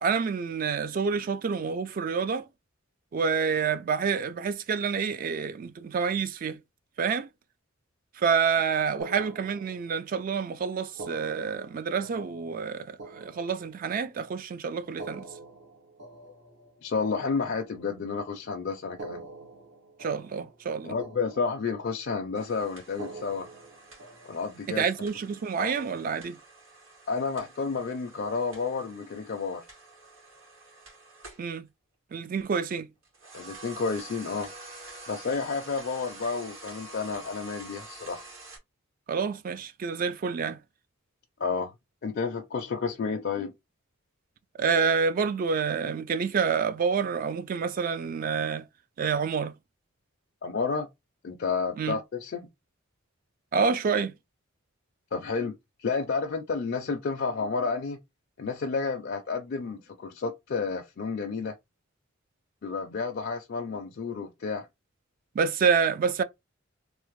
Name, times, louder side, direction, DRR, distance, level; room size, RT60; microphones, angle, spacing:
voice 1, 0.0-2.4 3.1-6.6 7.0-7.3 8.2-15.3 20.0-21.0 24.7-26.4 31.4-31.7 32.1-32.9 39.1-40.6 44.6-48.6 49.0-49.5 51.8-52.0 53.5-54.1 65.4-66.2, right 6 dB, 45° right, 0.3 m, -28 dB
sound 1, 9.0-10.2 10.9-14.2 14.9-18.2 18.9-20.7 21.0-22.1 22.9-24.7, right 3 dB, 60° right, 0.8 m, -46 dB
voice 2, 16.8-19.2 20.8-23.5 24.3-24.9 25.6-25.9 27.1-29.6 33.3-34.5 35.1-38.3 41.4-41.7 42.0-43.5 50.4-50.9 51.2-52.5 55.1-58.0 58.4-61.5 62.6-64.7, left 4 dB, 50° left, 0.4 m, -31 dB
sound 2, 22.4-31.5 33.0-38.6, right 2 dB, 75° right, 2.0 m, -48 dB
3.3 x 2.1 x 3.1 m
head